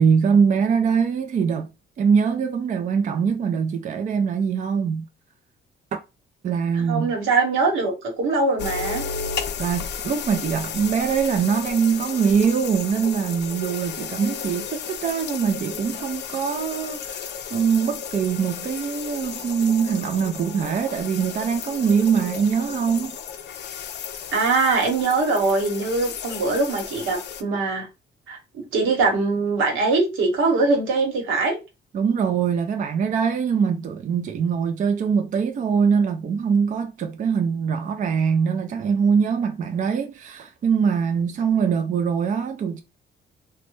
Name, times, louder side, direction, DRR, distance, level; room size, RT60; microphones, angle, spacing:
voice 1, 0.0-1.7 2.0-5.1 6.4-7.1 9.6-23.2 31.9-42.8, right 6 dB, 40° right, 0.4 m, -23 dB
voice 2, 6.9-9.0 24.3-27.9 28.3-31.6, right 3 dB, 85° right, 1.1 m, -22 dB
sound 1, 8.6-27.4, left 7 dB, 60° left, 0.5 m, -34 dB
3.1 x 2.1 x 3.0 m
cardioid pair, 90°, 20 cm